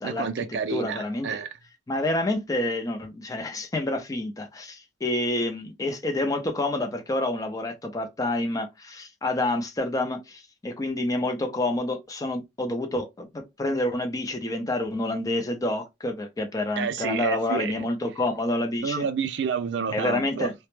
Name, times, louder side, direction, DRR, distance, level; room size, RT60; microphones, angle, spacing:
voice 1, 0.0-1.5 16.8-17.9 18.8-20.5, right 6 dB, 65° right, 0.4 m, -29 dB
voice 2, 0.7-1.3 1.9-19.1 19.9-20.5, left 2 dB, 20° left, 0.4 m, -28 dB
2.1 x 2.0 x 3.0 m
head